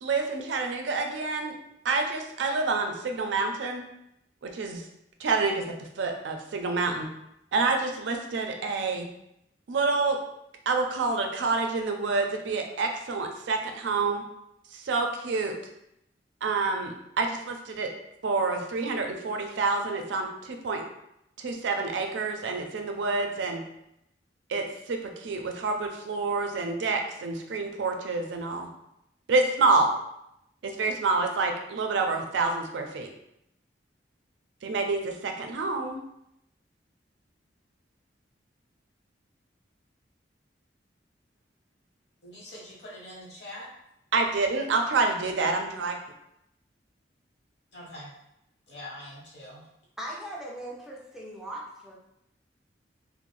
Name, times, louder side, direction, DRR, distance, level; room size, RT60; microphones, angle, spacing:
voice 1, 0.0-1.5 1.8-3.8 4.4-4.8 5.2-7.1 7.5-9.1 9.7-10.2 10.7-14.2 14.7-15.6 16.4-17.9 18.2-20.8 21.4-23.6 24.5-28.7 29.3-29.9 30.6-33.1 34.6-36.0 44.1-46.0, right 3 dB, 80° right, 4 dB, 0.4 m, -28 dB
voice 2, 42.2-43.7 47.7-48.1 48.7-49.6, left 1 dB, 65° left, -4 dB, 0.9 m, -43 dB
voice 3, 50.0-51.9, right 1 dB, 5° right, -4 dB, 0.4 m, -39 dB
2.5 x 2.0 x 3.1 m, 0.81 s
head